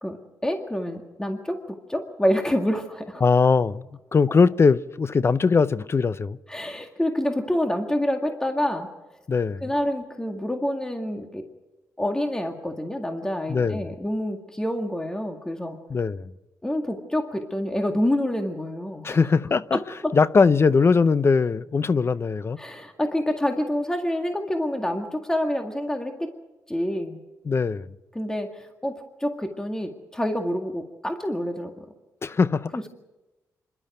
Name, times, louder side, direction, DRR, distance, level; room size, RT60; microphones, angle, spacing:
voice 1, 0.0-3.2 6.5-8.9 9.6-11.4 12.0-15.8 16.6-19.2 19.7-20.1 22.6-26.1 26.7-27.2 28.1-31.9, left 1 dB, 10° left, 2.0 m, -27 dB
voice 2, 3.2-3.8 4.1-6.4 9.3-9.7 13.5-13.9 15.9-16.3 19.0-22.6 27.5-27.9 32.2-32.9, left 5 dB, 40° left, 0.6 m, -21 dB
26.0 x 12.0 x 9.2 m
cardioid pair, 75°, 7 cm